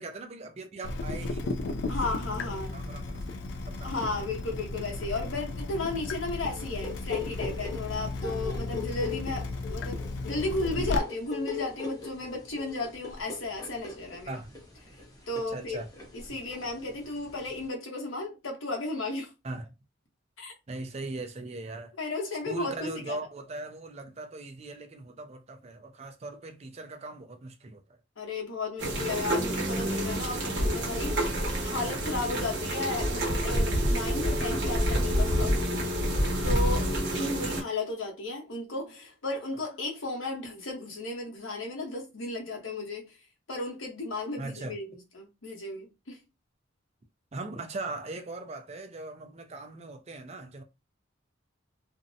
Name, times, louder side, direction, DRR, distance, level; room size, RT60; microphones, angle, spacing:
voice 1, 0.0-1.6 2.0-3.2 3.7-4.3 10.7-10.9 14.3-14.6 15.5-15.9 16.3-16.4 19.4-19.7 20.7-21.9 22.5-27.8 44.4-44.8 47.3-50.6, right 2 dB, 30° right, 0.4 m, -40 dB
Water tap faucet / Drip, 0.8-11.0, left 2 dB, 60° left, 0.3 m, -35 dB
voice 2, 1.9-2.8 3.8-14.4 15.3-15.8 16.1-19.3 20.4-20.5 22.0-23.2 28.2-35.7 36.4-43.1 43.5-46.2, left 2 dB, 85° left, 0.9 m, -34 dB
sound 1, 6.5-17.7, left 6 dB, 20° left, 0.6 m, -40 dB
sound 2, 28.8-37.6, equal, 60° right, 0.9 m, -28 dB
2.6 x 2.0 x 2.6 m
head